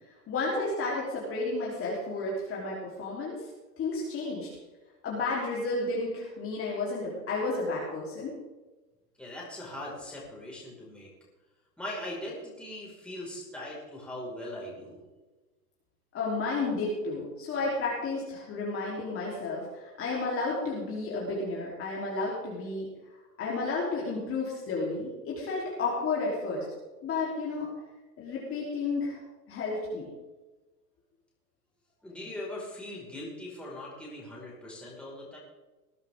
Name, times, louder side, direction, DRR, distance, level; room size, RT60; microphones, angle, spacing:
voice 1, 0.3-3.4 3.8-4.5 5.0-8.3 16.1-22.9 23.4-26.7 27.0-27.7 28.2-29.2 29.5-30.1, left 3 dB, 25° left, -5 dB, 3.6 m, -32 dB
voice 2, 9.2-11.1 11.8-15.0 32.0-35.4, left 1 dB, ahead, -5 dB, 5.2 m, -40 dB
20.0 x 11.0 x 3.7 m, 1.2 s
hypercardioid pair, 125°, 48 cm